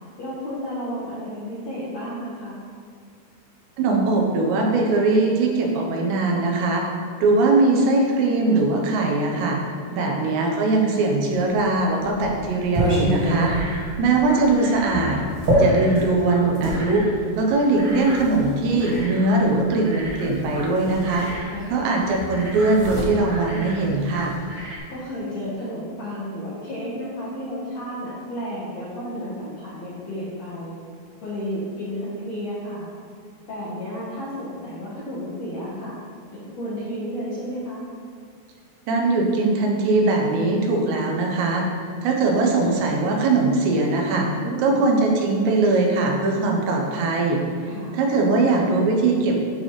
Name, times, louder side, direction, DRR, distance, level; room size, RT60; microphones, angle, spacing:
voice 1, 0.2-2.6 9.9-10.2 15.4-16.0 21.5-22.1 24.9-30.7 31.2-32.9 33.5-36.0 36.3-37.8 44.4-44.8 47.6-48.0, equal, 70° left, -9 dB, 1.6 m, -32 dB
voice 2, 3.8-6.9 7.2-9.6 9.9-13.5 14.0-15.2 15.6-17.0 17.4-21.3 21.7-24.3 38.9-41.7 42.0-47.4 47.9-49.4, right 3 dB, 90° right, 0 dB, 3.2 m, -21 dB
sound 1, 11.5-16.8 17.7-19.1 20.3-20.4 20.7-21.9 22.1-24.4, equal, 45° right, 1.7 m, -26 dB
sound 2, 13.0-24.8, equal, 60° right, 2.1 m, -38 dB
11.5 x 4.2 x 3.2 m, 2.1 s
omnidirectional pair, 5.0 m